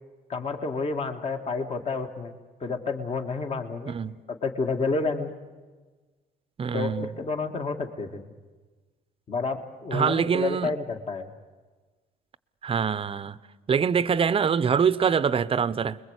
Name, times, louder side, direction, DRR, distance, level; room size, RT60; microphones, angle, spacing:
voice 1, 0.3-2.3 2.6-3.9 4.3-5.3 6.7-8.3 9.3-11.3, left 4 dB, 35° left, 2.1 m, -30 dB
voice 2, 3.9-4.2 6.6-7.1 9.9-10.8 12.6-13.4 13.7-16.0, right 7 dB, 35° right, 0.8 m, -24 dB
29.5 x 21.5 x 8.2 m
cardioid pair, 110°, 17 cm